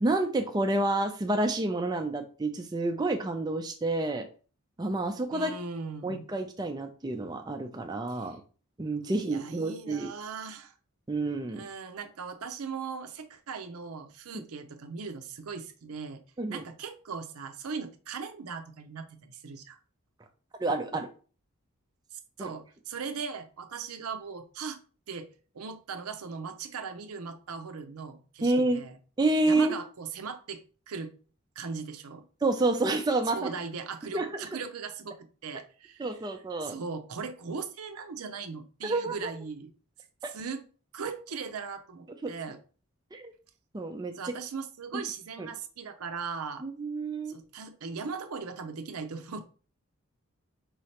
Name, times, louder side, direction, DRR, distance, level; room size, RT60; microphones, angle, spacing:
voice 1, 0.0-4.3 4.8-5.5 6.0-8.4 8.8-10.1 11.1-11.6 14.3-14.4 16.4-16.6 20.6-21.1 22.4-22.5 28.4-28.8 29.2-29.8 32.4-33.5 34.1-34.5 36.0-36.8 38.8-39.3 40.2-40.3 42.2-42.3 43.1-43.3 43.7-44.3 45.4-45.5 46.6-47.4, right 2 dB, 20° right, 5 dB, 0.4 m, -29 dB
voice 2, 5.3-6.3 8.1-8.4 9.1-10.7 11.5-16.2 16.5-19.8 22.1-24.8 25.1-25.3 25.5-29.0 29.5-31.1 31.6-32.2 33.3-36.1 36.6-39.7 40.3-40.6 40.9-42.6 44.1-46.6 47.3-49.4, right 5 dB, 85° right, 7 dB, 0.6 m, -39 dB
4.8 x 3.2 x 2.8 m, 0.38 s
head